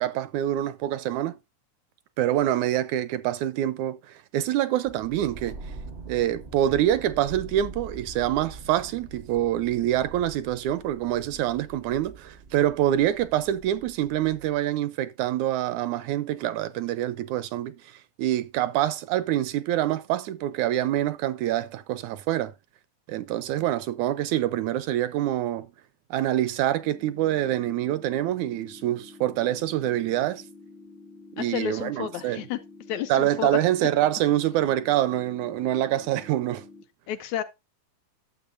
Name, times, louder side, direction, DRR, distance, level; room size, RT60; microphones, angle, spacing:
voice 1, 0.0-1.4 2.2-5.7 6.1-22.5 23.1-25.7 26.1-30.4 31.4-32.5 33.1-36.7, right 12 dB, 80° right, 1.8 m, -26 dB
sound 1, 4.8-14.6, right 3 dB, 55° right, 0.7 m, -44 dB
sound 2, 26.8-36.8, left 3 dB, 60° left, 1.3 m, -48 dB
voice 2, 31.4-32.6 32.9-33.5 37.1-37.4, left 11 dB, 75° left, 1.9 m, -31 dB
12.0 x 7.5 x 2.5 m
omnidirectional pair, 3.6 m